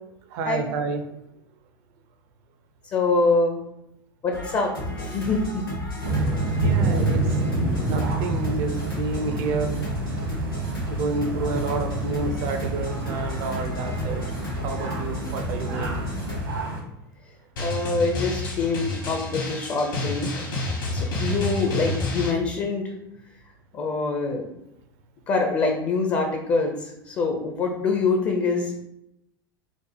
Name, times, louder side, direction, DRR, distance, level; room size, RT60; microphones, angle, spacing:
voice 1, 0.3-1.0 6.6-7.2 7.8-9.8 10.9-14.3 14.6-16.0, right 4 dB, 45° right, 6 dB, 0.5 m, -29 dB
voice 2, 2.9-3.6 4.2-5.6 17.6-20.5 20.9-22.9 23.7-24.5 25.3-28.8, left 3 dB, 30° left, 2 dB, 0.5 m, -25 dB
sound 1, 4.3-16.5, left 1 dB, 85° left, 1.4 m, -32 dB
sound 2, 6.0-16.8, right 2 dB, 70° right, 1.0 m, -28 dB
Drum, 17.6-22.3, left 2 dB, 65° left, 1.1 m, -29 dB
5.0 x 2.0 x 3.2 m, 0.84 s
figure-of-eight pair, 80°, 12 cm